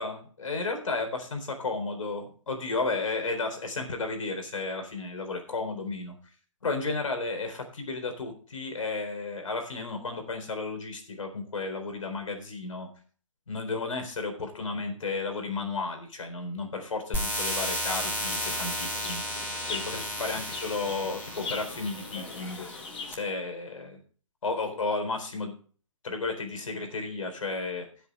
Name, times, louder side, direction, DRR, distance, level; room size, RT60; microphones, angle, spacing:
voice 1, 0.0-6.1 6.6-12.9 13.5-19.2 19.7-22.7 23.1-24.0 24.4-25.6 26.0-27.9, left 3 dB, 75° left, 5 dB, 4.2 m, -33 dB
sound 1, 17.1-23.1, equal, 10° left, 6.2 m, -33 dB
Chirp tweet, 18.0-23.2, left 4 dB, 60° left, 2.8 m, -41 dB
16.5 x 8.0 x 3.4 m, 0.41 s
hypercardioid pair, 145°, 17 cm